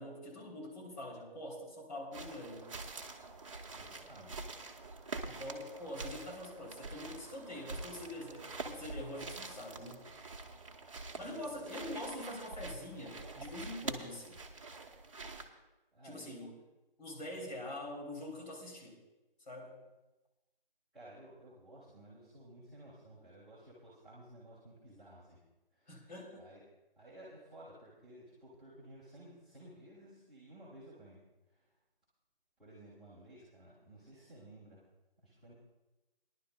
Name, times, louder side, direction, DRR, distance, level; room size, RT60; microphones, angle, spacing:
voice 1, 0.0-2.8 5.2-10.1 11.2-14.4 16.0-16.5 17.0-19.0 19.4-19.9 25.9-26.5, left 1 dB, 50° left, -1 dB, 3.4 m, -45 dB
sound 1, 2.1-15.5, right 3 dB, 35° right, 0.9 m, -46 dB
voice 2, 3.7-4.6 11.2-11.7 15.9-16.5 20.9-25.4 25.7-26.0 26.4-26.6 27.0-31.7 32.6-34.9 35.2-35.5, right 1 dB, ahead, -15 dB, 1.3 m, -55 dB
22.5 x 11.0 x 2.3 m, 1.1 s
figure-of-eight pair, 155°, 29 cm